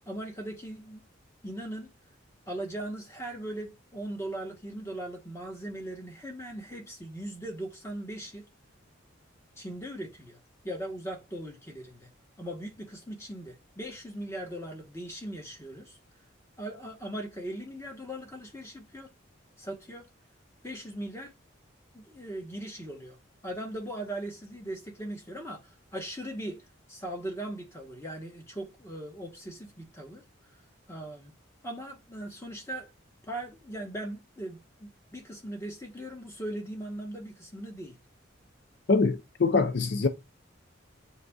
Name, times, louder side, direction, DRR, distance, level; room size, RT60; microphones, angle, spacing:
voice 1, 0.1-1.0 1.4-1.9 2.5-8.5 9.6-12.1 12.4-16.0 16.6-19.1 19.6-20.1 20.6-21.3 21.9-23.2 23.4-26.6 26.9-30.2 30.9-31.3 31.6-32.9 33.3-38.0, right 1 dB, 15° left, 0.9 m, -39 dB
voice 2, 38.9-40.1, left 4 dB, 60° left, 0.5 m, -24 dB
7.2 x 2.6 x 2.3 m
head